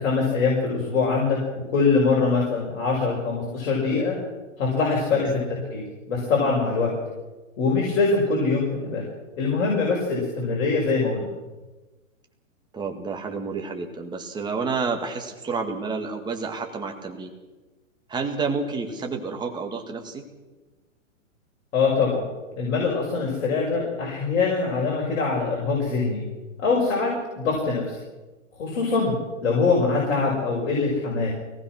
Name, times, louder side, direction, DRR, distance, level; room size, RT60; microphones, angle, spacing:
voice 1, 0.0-4.2 4.6-6.9 7.6-9.0 9.4-11.3 21.7-22.2 22.6-26.2 26.6-27.1 27.4-28.0 28.6-29.1 29.4-31.3, left 4 dB, 55° left, -3 dB, 6.5 m, -23 dB
voice 2, 5.1-5.5 12.7-17.3 18.1-20.3, right 4 dB, 10° right, 3 dB, 2.1 m, -30 dB
23.5 x 19.0 x 6.3 m, 1.2 s
hypercardioid pair, 145°, 41 cm